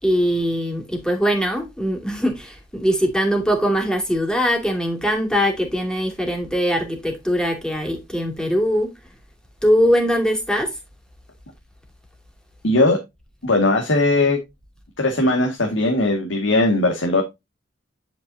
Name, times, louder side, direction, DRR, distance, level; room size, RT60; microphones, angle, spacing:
voice 1, 0.0-8.9 9.6-10.7, equal, 5° left, 2.6 m, -21 dB
voice 2, 12.6-13.0 13.4-14.4 15.0-17.2, left 2 dB, 85° left, 2.1 m, -19 dB
10.0 x 5.9 x 2.7 m
head